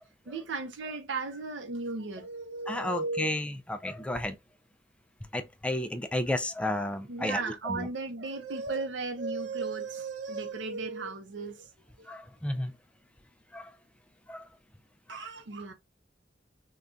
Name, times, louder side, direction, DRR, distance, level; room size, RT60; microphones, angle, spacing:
voice 1, 0.3-3.4 7.1-11.7 12.0-12.1 15.1-15.7, right 3 dB, 75° right, 0.6 m, -35 dB
voice 2, 2.7-4.4 5.3-7.9 12.1-12.7 13.5-13.7 14.3-14.5 15.1-15.2, left 1 dB, 5° left, 0.3 m, -32 dB
3.7 x 2.2 x 2.4 m
head